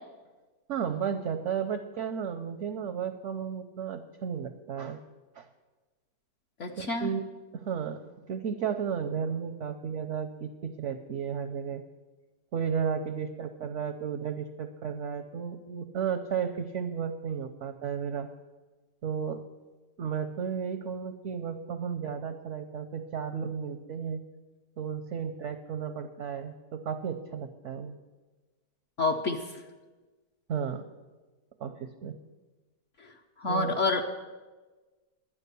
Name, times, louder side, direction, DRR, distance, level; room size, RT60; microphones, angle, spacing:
voice 1, 0.7-5.0 5.4-5.5 6.8-7.2 7.5-11.8 12.5-18.3 19.0-19.4 20.0-24.2 24.8-28.0 30.5-30.9 31.6-32.2 33.5-33.8, right 7 dB, 65° right, 8 dB, 0.8 m, -33 dB
voice 2, 6.6-7.1 29.0-29.6 33.0-33.1 33.4-34.0, left 3 dB, 55° left, 2 dB, 1.0 m, -28 dB
12.0 x 8.8 x 6.8 m, 1.3 s
omnidirectional pair, 1.8 m